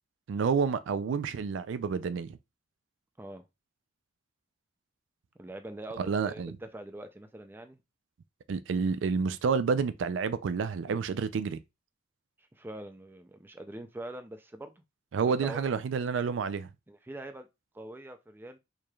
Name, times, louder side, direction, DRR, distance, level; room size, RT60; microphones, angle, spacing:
voice 1, 0.3-2.4 6.0-6.5 8.5-11.6 15.1-16.7, right 5 dB, 80° right, 0.4 m, -29 dB
voice 2, 5.4-7.8 12.4-14.7 15.3-15.7 16.9-17.5 17.7-18.6, right 1 dB, 10° right, 0.4 m, -43 dB
4.7 x 3.1 x 2.3 m
head